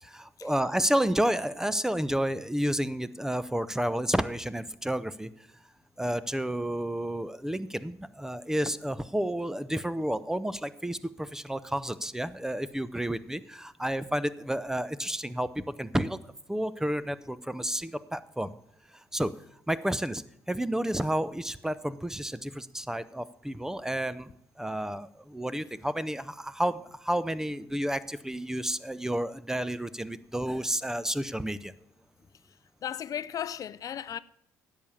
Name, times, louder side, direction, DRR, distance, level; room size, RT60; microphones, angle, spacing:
voice 1, 0.0-5.3 6.0-16.2 16.5-18.5 19.1-19.3 19.7-20.2 20.5-24.3 24.6-31.7, right 1 dB, 5° right, 0.6 m, -31 dB
voice 2, 32.8-34.2, left 9 dB, 50° left, 0.5 m, -35 dB
10.5 x 7.4 x 7.0 m
supercardioid pair, 75°, 8 cm